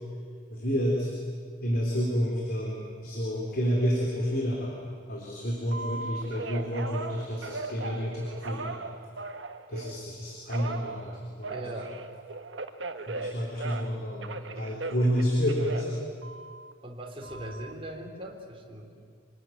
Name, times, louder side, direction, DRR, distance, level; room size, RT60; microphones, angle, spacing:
voice 1, 0.5-1.1 1.6-4.7 5.1-8.8 9.7-11.1 11.4-11.6 13.1-16.0, equal, 55° left, -2 dB, 4.2 m, -29 dB
Telephone, 5.7-10.0 10.5-14.0 14.2-16.7 17.2-17.7, right 3 dB, 90° right, 1.4 m, -38 dB
voice 2, 11.5-12.0 15.1-15.3 16.8-18.9, right 1 dB, 30° right, 0 dB, 3.7 m, -40 dB
27.0 x 19.5 x 9.5 m, 2.2 s
head